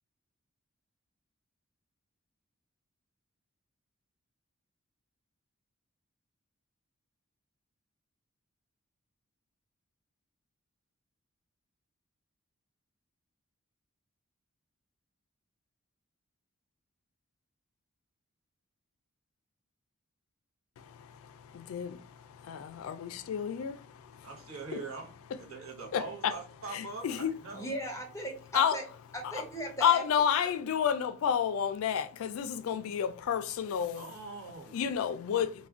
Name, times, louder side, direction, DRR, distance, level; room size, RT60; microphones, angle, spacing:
voice 1, 20.8-24.3 24.7-24.8 25.9-26.3 26.7-27.4 28.5-28.8 29.3-29.4 29.8-34.1 34.7-35.7, left 8 dB, 70° left, 0.3 m, -31 dB
voice 2, 24.2-27.7 33.9-34.8, right 3 dB, 70° right, 0.8 m, -43 dB
voice 3, 27.5-28.8 29.3-30.0, right 1 dB, 15° left, 0.6 m, -37 dB
2.4 x 2.2 x 3.4 m
head